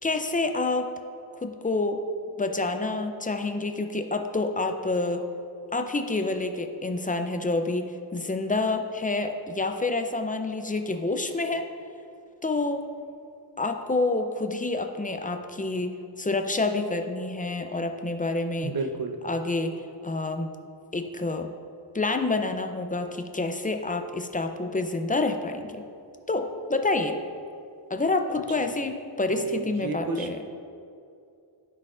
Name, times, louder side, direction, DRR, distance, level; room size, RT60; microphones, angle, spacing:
voice 1, 0.0-0.9 1.4-2.0 2.4-5.2 5.7-11.6 12.4-12.8 13.6-18.7 19.2-19.7 20.0-20.5 20.9-21.5 21.9-25.8 26.3-27.2 27.9-30.4, left 3 dB, 20° left, 6 dB, 0.4 m, -28 dB
voice 2, 18.6-19.2 29.3-30.5, right 3 dB, 50° right, 6 dB, 0.7 m, -31 dB
14.0 x 4.6 x 2.4 m, 2.5 s
wide cardioid pair, 105°, 45 cm